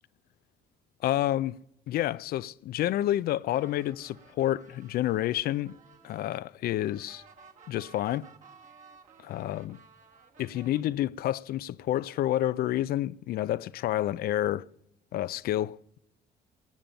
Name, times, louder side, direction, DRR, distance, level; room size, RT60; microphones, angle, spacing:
voice 1, 1.0-1.6 1.9-5.8 6.0-7.2 7.7-8.3 9.2-9.8 10.4-14.7 15.1-16.0, left 13 dB, 65° left, 0.4 m, -29 dB
sound 1, 3.5-10.8, right 5 dB, 45° right, 1.6 m, -56 dB
19.5 x 7.6 x 5.2 m
cardioid pair, 110°, 17 cm